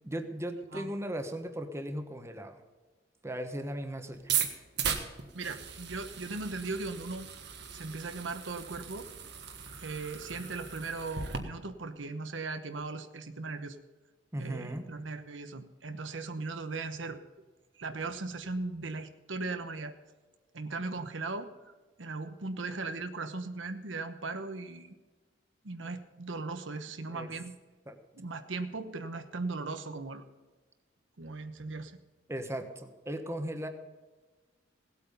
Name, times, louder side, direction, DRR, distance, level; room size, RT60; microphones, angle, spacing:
voice 1, 0.0-2.6 3.2-4.3 14.3-14.9 27.1-27.3 27.9-28.0 32.3-33.7, right 1 dB, 15° right, 6 dB, 1.2 m, -37 dB
sound 1, 4.2-11.4, right 7 dB, 65° right, 1.5 m, -37 dB
voice 2, 5.3-7.3 7.7-9.1 9.8-13.8 14.4-17.2 17.8-19.9 20.5-21.7 22.0-25.0 25.6-27.5 28.2-30.2 31.2-32.0, right 3 dB, 80° right, 9 dB, 1.1 m, -38 dB
17.5 x 8.5 x 5.4 m, 1.3 s
head